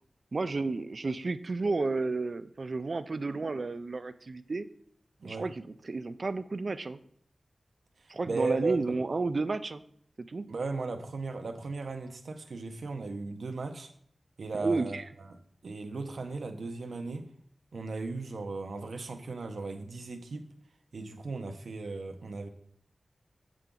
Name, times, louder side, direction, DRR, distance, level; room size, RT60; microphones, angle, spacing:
voice 1, 0.3-4.6 5.2-7.0 8.1-9.8 10.2-10.5 14.5-15.0, right 3 dB, 50° right, 12 dB, 0.4 m, -32 dB
voice 2, 8.0-9.0 10.5-13.9 14.4-17.3 17.7-20.5 20.9-22.5, right 3 dB, 80° right, 6 dB, 0.9 m, -36 dB
8.0 x 7.5 x 3.8 m, 0.65 s
wide cardioid pair, 105°, 0 cm